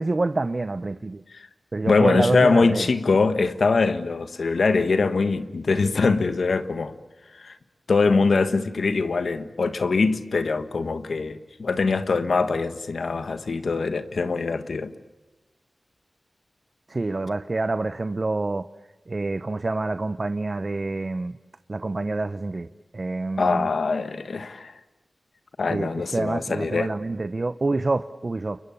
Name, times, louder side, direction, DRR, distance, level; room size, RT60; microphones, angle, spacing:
voice 1, 0.0-1.2 1.7-2.9 16.9-18.7 19.1-21.3 21.7-22.7 22.9-23.7 25.7-28.6, right 2 dB, 45° right, 0.8 m, -27 dB
voice 2, 1.8-6.9 7.4-7.5 7.9-14.9 23.4-24.7 25.6-26.9, left 4 dB, 80° left, 1.5 m, -23 dB
30.0 x 23.0 x 7.1 m
wide cardioid pair, 65°, 0 cm